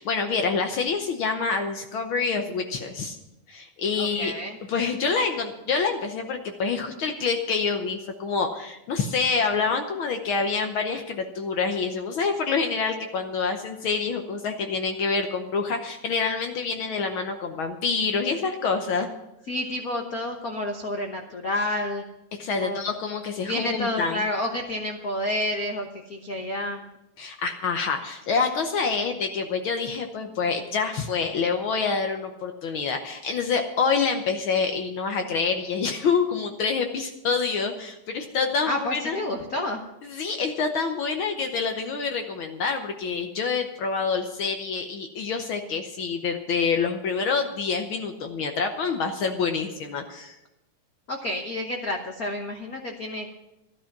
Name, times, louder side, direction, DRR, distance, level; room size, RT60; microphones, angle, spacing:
voice 1, 0.0-3.2 3.5-4.3 4.7-19.1 22.4-24.2 27.2-39.2 40.0-50.3, left 5 dB, 70° left, 5 dB, 1.2 m, -27 dB
voice 2, 4.0-4.6 19.5-22.0 22.6-22.9 23.4-26.8 38.7-39.8 51.1-53.3, left 1 dB, 85° left, 3 dB, 0.7 m, -29 dB
13.0 x 12.0 x 5.9 m, 0.90 s
omnidirectional pair, 3.5 m